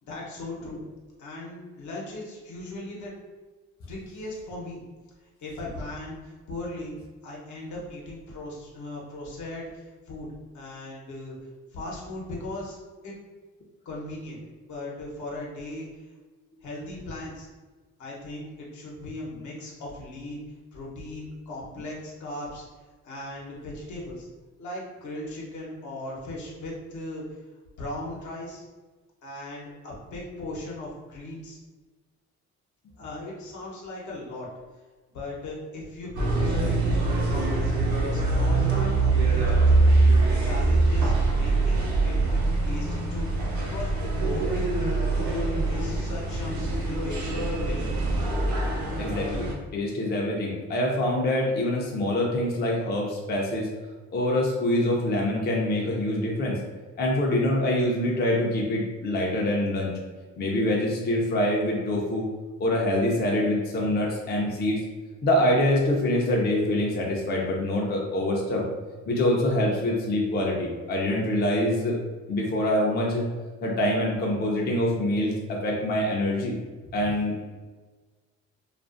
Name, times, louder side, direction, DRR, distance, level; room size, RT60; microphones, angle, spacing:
voice 1, 0.0-0.9 1.2-3.1 3.9-4.8 5.4-7.0 7.2-10.3 10.5-11.4 11.7-12.8 13.0-13.1 13.8-14.4 14.7-15.9 16.6-17.5 18.0-20.4 20.7-22.7 23.0-24.3 24.6-27.4 27.8-28.7 29.2-31.6 33.0-34.5 35.1-37.7 38.0-39.8 40.3-42.4 42.7-43.3 43.7-43.9 44.2-47.9, left 1 dB, 70° left, -4 dB, 0.8 m, -38 dB
sound 1, 36.2-49.5, right 2 dB, 70° right, 0.7 m, -23 dB
voice 2, 49.0-53.7 54.1-56.6 57.0-59.9 60.4-62.3 62.6-64.8 65.2-68.6 69.1-72.0 72.3-73.2 73.6-76.6 76.9-77.5, left 1 dB, 35° left, -2 dB, 0.5 m, -25 dB
2.4 x 2.4 x 2.4 m, 1.3 s
cardioid pair, 90°, 30 cm